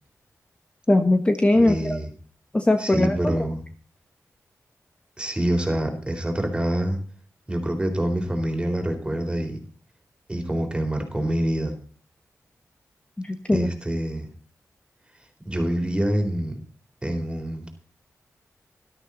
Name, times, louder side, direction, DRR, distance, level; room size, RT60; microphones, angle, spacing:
voice 1, 0.9-2.0 2.5-3.3 13.2-13.7, left 1 dB, 20° left, 6 dB, 1.4 m, -20 dB
voice 2, 1.5-2.1 2.8-3.6 5.2-7.0 7.5-9.6 10.3-11.7 13.5-14.3 15.4-16.6 17.0-17.7, right 1 dB, 15° right, 4 dB, 4.0 m, -26 dB
13.0 x 12.5 x 4.1 m, 0.43 s
cardioid pair, 70°, 6 cm